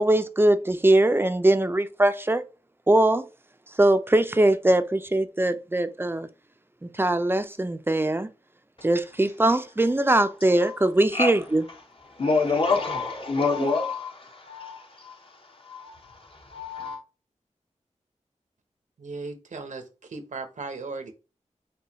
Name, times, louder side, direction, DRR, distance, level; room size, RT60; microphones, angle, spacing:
voice 1, 0.0-2.4 2.9-3.3 3.8-6.3 6.8-8.3 8.8-11.6 13.6-13.7, right 1 dB, 15° right, 0.4 m, -21 dB
voice 2, 12.2-15.2 15.6-17.0, left 4 dB, 45° left, 0.9 m, -27 dB
voice 3, 19.0-21.1, right 3 dB, 80° right, 0.8 m, -37 dB
5.4 x 2.3 x 2.9 m
wide cardioid pair, 90°, 13 cm